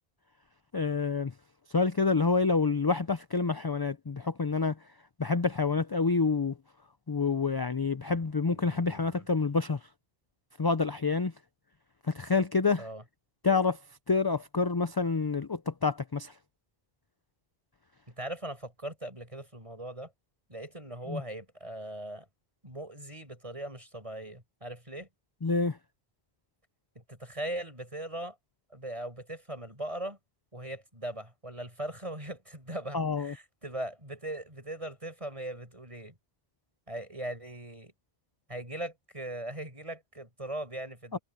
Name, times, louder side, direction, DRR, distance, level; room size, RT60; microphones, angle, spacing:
voice 1, 0.7-1.3 1.7-4.7 5.2-6.5 7.1-9.8 10.6-11.3 12.1-12.9 13.4-13.8 14.1-16.3 21.1-21.2 25.4-25.8 32.9-33.3 41.1-41.2, left 4 dB, 30° left, 0.5 m, -27 dB
voice 2, 8.5-9.3 12.8-13.0 18.2-20.1 20.5-22.3 22.6-25.1 26.9-28.4 28.7-30.2 30.5-36.2 36.9-37.9 38.5-41.2, right 1 dB, 30° right, 6.7 m, -39 dB
omnidirectional pair, 1.1 m